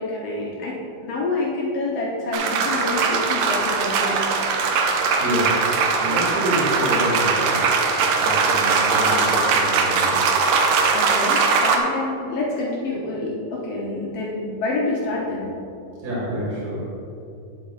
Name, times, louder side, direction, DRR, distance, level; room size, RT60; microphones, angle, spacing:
voice 1, 0.0-4.2 10.9-15.5, left 2 dB, 70° left, -3 dB, 1.5 m, -27 dB
sound 1, 2.3-11.8, right 4 dB, 80° right, 2.4 m, -20 dB
voice 2, 5.2-5.6 6.0-7.6 8.2-10.2 16.0-16.8, equal, 60° right, -7 dB, 3.5 m, -27 dB
9.9 x 7.5 x 3.8 m, 2.7 s
omnidirectional pair, 4.1 m